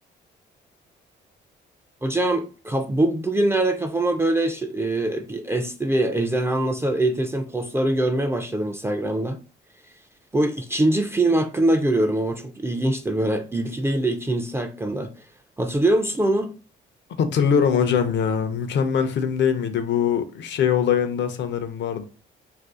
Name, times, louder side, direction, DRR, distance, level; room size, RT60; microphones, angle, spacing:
voice 1, 2.0-9.4 10.3-15.1 15.6-16.5, right 1 dB, 10° right, 0.3 m, -23 dB
voice 2, 17.2-22.0, left 7 dB, 65° left, 0.6 m, -22 dB
2.6 x 2.4 x 3.5 m
cardioid pair, 90°, 20 cm